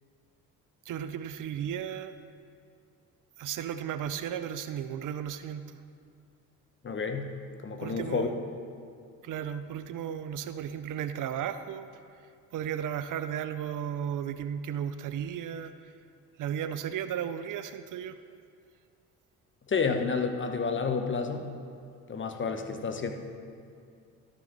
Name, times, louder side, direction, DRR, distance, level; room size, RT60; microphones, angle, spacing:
voice 1, 0.9-2.1 3.4-5.8 7.8-8.4 9.2-11.9 12.5-15.9 16.4-18.2, right 9 dB, 55° right, 11 dB, 0.5 m, -34 dB
voice 2, 6.8-7.3 7.6-8.3 19.7-21.5 22.1-23.1, left 5 dB, 30° left, 6 dB, 1.0 m, -30 dB
12.5 x 6.2 x 4.0 m, 2.4 s
supercardioid pair, 60°, 37 cm